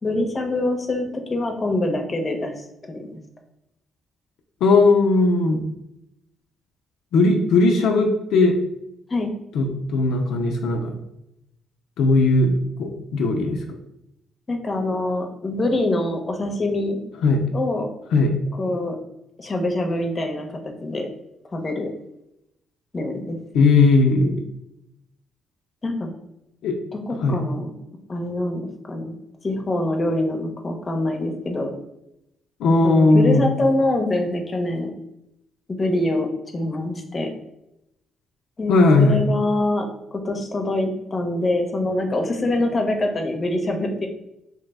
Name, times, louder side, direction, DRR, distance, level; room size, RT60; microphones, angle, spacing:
voice 1, 0.0-1.0 1.3-3.2 9.1-9.3 14.5-17.0 17.5-17.9 18.6-19.0 19.4-21.1 21.5-21.9 22.9-23.4 25.8-26.1 26.9-27.7 28.1-29.1 29.4-31.7 32.8-34.9 35.7-36.3 36.5-37.3 38.6-39.9 40.1-44.1, left 2 dB, 30° left, 3 dB, 0.6 m, -24 dB
voice 2, 4.6-5.6 7.1-8.5 9.5-10.9 12.0-12.5 12.8-13.6 17.2-17.4 18.1-18.3 23.5-24.4 26.6-26.8 27.2-27.4 32.6-33.5 38.7-39.2, left 3 dB, 80° left, 2 dB, 0.4 m, -17 dB
3.2 x 2.0 x 3.4 m, 0.84 s
cardioid pair, 90°, 0 cm